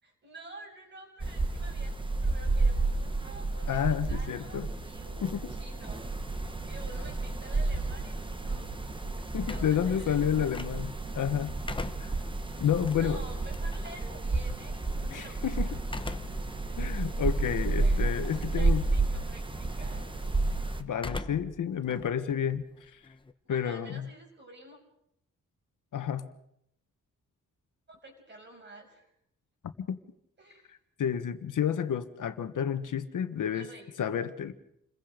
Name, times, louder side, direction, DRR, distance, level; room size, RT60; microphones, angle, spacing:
voice 1, 0.0-8.7 9.3-10.5 11.7-11.9 13.0-15.7 17.8-18.1 18.5-20.1 23.5-24.8 27.9-29.1 30.4-30.7 33.5-33.9, right 1 dB, 35° right, 2 dB, 6.7 m, -50 dB
sound 1, 1.2-20.8, right 3 dB, 15° right, 1.3 m, -31 dB
voice 2, 3.7-4.7 5.2-5.5 9.3-11.5 12.0-12.1 12.6-13.2 15.1-15.7 16.8-18.8 20.8-23.0 23.5-24.1 25.9-26.3 29.8-30.0 30.7-33.7 34.0-34.5, left 9 dB, 80° left, 9 dB, 1.6 m, -30 dB
sound 2, 9.4-11.1 11.5-14.0 15.8-16.5 17.0-17.1 18.2-18.7 19.0-19.4 20.9-21.6 21.9-23.3, left 2 dB, 15° left, 1.0 m, -40 dB
28.5 x 22.0 x 5.2 m, 0.73 s
wide cardioid pair, 165°, 31 cm